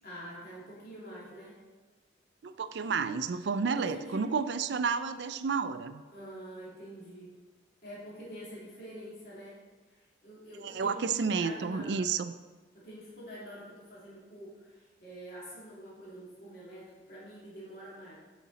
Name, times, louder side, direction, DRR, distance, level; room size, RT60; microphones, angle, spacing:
voice 1, 0.0-1.5 3.8-4.2 6.1-7.3 7.8-9.5 9.9-12.0 12.7-18.2, equal, 55° left, -7 dB, 2.5 m, -46 dB
voice 2, 2.4-6.0 10.6-12.3, right 5 dB, 75° right, 12 dB, 0.4 m, -31 dB
8.4 x 5.2 x 4.0 m, 1.3 s
head